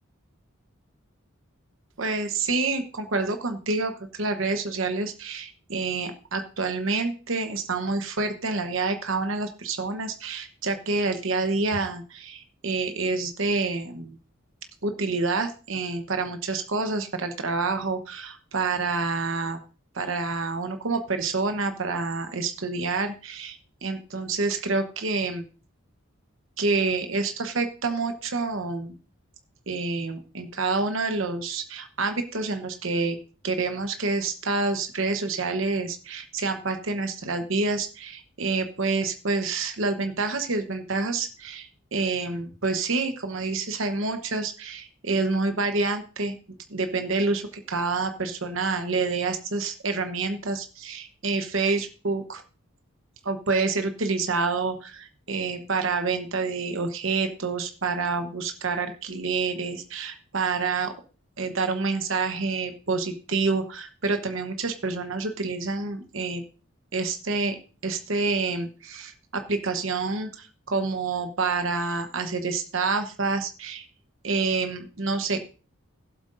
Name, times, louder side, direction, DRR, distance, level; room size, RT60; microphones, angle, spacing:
voice 1, 2.0-14.2 14.8-19.6 19.9-25.4 26.6-28.9 29.7-33.2 33.4-46.4 46.7-52.4 53.2-60.9 61.4-66.4 66.9-67.6 67.8-73.9 74.2-75.5, right 3 dB, 65° right, 7 dB, 1.0 m, -28 dB
16.5 x 8.0 x 2.6 m, 0.35 s
head